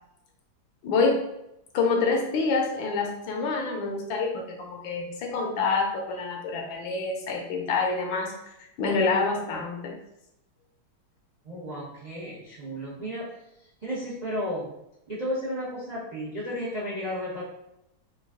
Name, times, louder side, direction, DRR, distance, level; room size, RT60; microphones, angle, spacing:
voice 1, 0.8-1.2 1.7-8.3 8.8-9.9, left 4 dB, 75° left, 1 dB, 1.4 m, -27 dB
voice 2, 11.4-13.3 13.8-14.7 15.1-17.4, equal, 65° right, -7 dB, 0.4 m, -33 dB
3.9 x 2.3 x 3.5 m, 0.84 s
omnidirectional pair, 2.3 m